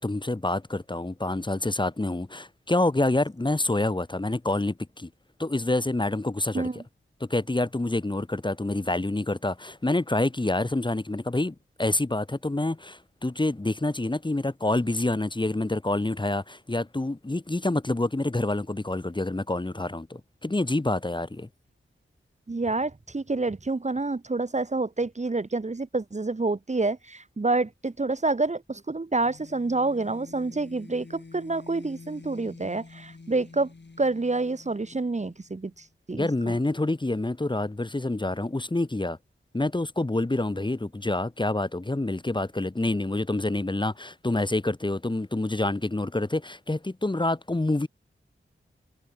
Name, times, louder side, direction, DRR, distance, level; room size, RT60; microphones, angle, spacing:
voice 1, 0.0-5.1 5.4-6.7 7.2-21.5 36.1-39.2 39.5-47.9, left 2 dB, 20° left, 1.2 m, -27 dB
voice 2, 22.5-33.7 34.0-35.7 36.1-36.3, right 3 dB, 35° right, 1.1 m, -28 dB
sound 1, 29.2-35.9, left 3 dB, 55° left, 6.1 m, -48 dB
cardioid pair, 50°, 21 cm